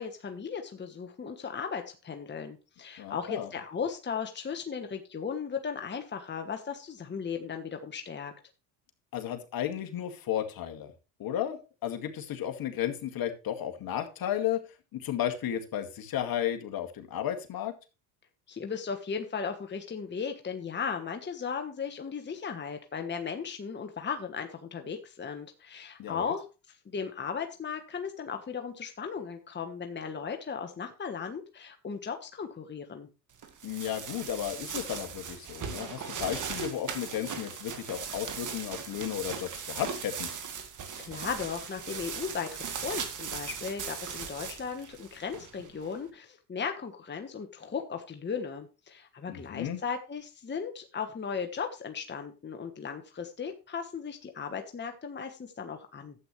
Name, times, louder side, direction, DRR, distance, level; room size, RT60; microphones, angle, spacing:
voice 1, 0.0-8.3 18.5-33.1 41.0-56.1, left 6 dB, 25° left, 5 dB, 1.4 m, -36 dB
voice 2, 3.0-3.5 9.1-10.9 11.2-14.6 14.9-17.7 26.0-26.3 33.6-40.3 49.3-49.8, left 10 dB, 50° left, 5 dB, 2.1 m, -33 dB
sound 1, 33.4-45.9, right 7 dB, 45° right, 2.1 m, -39 dB
12.0 x 8.3 x 3.2 m, 0.30 s
supercardioid pair, 85°, 44 cm